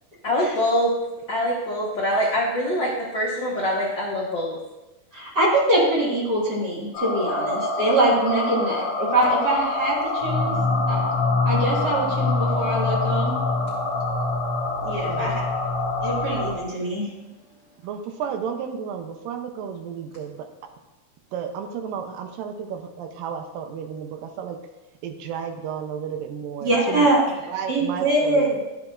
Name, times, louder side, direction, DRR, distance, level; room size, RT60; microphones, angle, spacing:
voice 1, 0.2-0.9 1.3-4.6, equal, 75° left, -5 dB, 1.0 m, -24 dB
voice 2, 5.1-10.5 10.9-11.0 11.5-13.3 14.8-15.3 16.0-17.1 26.6-27.3 27.7-28.6, right 1 dB, 35° right, -6 dB, 2.0 m, -23 dB
sound 1, 6.9-16.5, left 3 dB, 50° left, 2.6 m, -25 dB
voice 3, 15.0-15.5 17.8-20.5 21.3-24.6 25.0-27.1 27.5-28.5, right 7 dB, 80° right, 6 dB, 2.4 m, -32 dB
11.5 x 7.8 x 2.5 m, 1.0 s
omnidirectional pair, 4.1 m